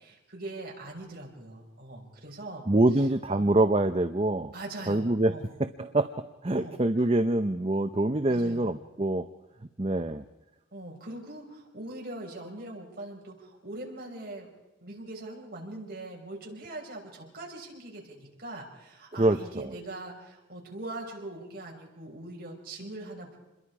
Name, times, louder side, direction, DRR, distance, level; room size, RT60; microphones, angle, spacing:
voice 1, 0.0-2.7 3.3-3.5 4.5-5.5 6.5-6.7 8.3-8.7 10.7-14.5 14.8-23.4, right 2 dB, 45° right, -1 dB, 5.9 m, -42 dB
voice 2, 2.7-4.5 4.9-5.3 5.6-6.1 6.4-9.3 9.8-10.2 19.2-19.7, right 2 dB, 30° right, 8 dB, 0.7 m, -25 dB
27.5 x 22.0 x 4.9 m, 1.0 s
head